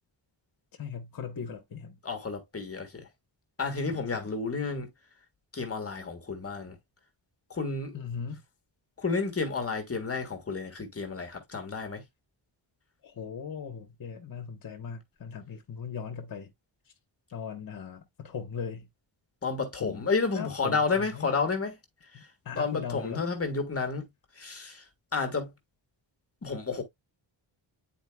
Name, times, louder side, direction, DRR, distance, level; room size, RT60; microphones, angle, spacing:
voice 1, 0.7-2.0 3.9-4.3 7.9-8.4 13.0-16.5 17.3-18.9 19.8-20.1 20.3-21.3 22.1-23.3, left 6 dB, 45° left, 1.1 m, -39 dB
voice 2, 2.0-3.1 3.6-4.9 5.5-6.8 7.5-8.0 9.0-12.0 19.4-21.8 22.1-22.3 22.5-24.1 24.3-24.9 25.1-25.5 26.4-26.8, left 4 dB, 30° left, 1.5 m, -31 dB
10.0 x 4.3 x 2.2 m
wide cardioid pair, 155°, 47 cm